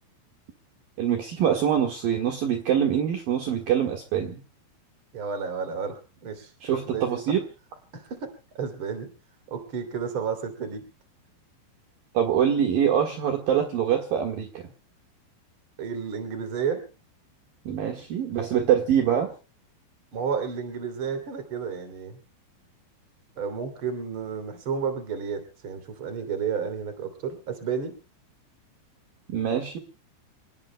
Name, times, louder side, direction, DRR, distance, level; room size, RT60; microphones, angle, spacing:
voice 1, 1.0-4.4 6.6-7.4 12.1-14.6 17.7-19.3 29.3-29.8, right 9 dB, 60° right, 2 dB, 3.0 m, -24 dB
voice 2, 5.1-6.5 6.9-7.2 7.9-9.1 9.5-10.9 15.8-16.8 20.1-22.2 23.4-27.9, right 6 dB, 35° right, 8 dB, 3.1 m, -31 dB
28.5 x 18.5 x 2.2 m, 0.34 s
omnidirectional pair, 5.2 m